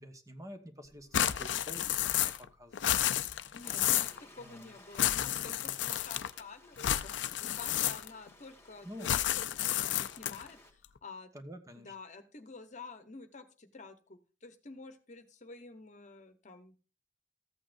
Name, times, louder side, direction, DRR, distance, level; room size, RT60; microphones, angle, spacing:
voice 1, 0.0-3.0 3.4-3.6 4.4-4.7 5.2-5.7 8.8-9.1 11.3-11.9, equal, 20° right, 7 dB, 1.1 m, -49 dB
sound 1, 1.1-2.5 2.7-4.2 4.9-6.4 6.8-8.3 9.0-10.5, left 12 dB, 90° left, 0.5 m, -31 dB
voice 2, 3.5-7.1 7.4-9.5 9.8-11.3 11.7-16.7, left 3 dB, 45° left, 9 dB, 1.0 m, -50 dB
Stream, 3.6-10.7, left 2 dB, 15° left, 1.8 m, -58 dB
14.0 x 8.4 x 2.5 m, 0.35 s
head